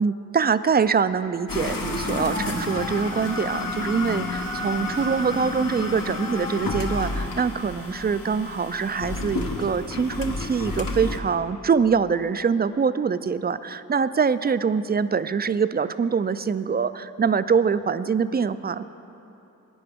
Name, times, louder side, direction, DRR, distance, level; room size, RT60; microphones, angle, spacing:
voice 1, 0.0-18.9, right 6 dB, 30° right, 14 dB, 0.4 m, -24 dB
sound 1, 1.5-11.2, left 2 dB, 70° left, 1.2 m, -30 dB
18.0 x 9.3 x 3.5 m, 3.0 s
cardioid pair, 55°, 34 cm